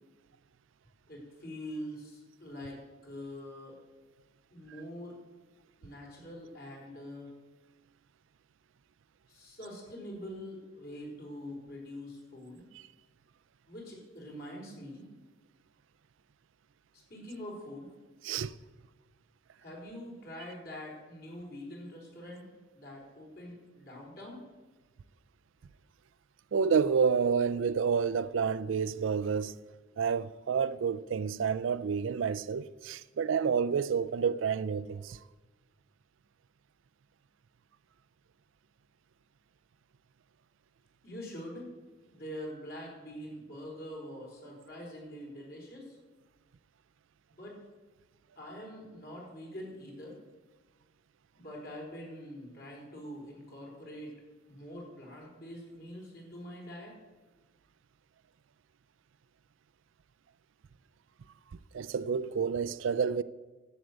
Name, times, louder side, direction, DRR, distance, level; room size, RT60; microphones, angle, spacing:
voice 1, 1.1-3.8 4.5-5.2 5.8-7.3 9.3-12.7 13.7-15.1 17.1-17.9 19.6-22.4 22.7-24.4 41.0-41.7 42.1-46.0 47.3-47.6 48.4-50.2 51.4-54.2 54.5-56.9, equal, 50° left, 4.2 m, -44 dB
voice 2, 26.5-29.5 30.0-35.2 61.7-63.2, right 6 dB, 70° right, 0.4 m, -29 dB
11.0 x 8.2 x 7.9 m
head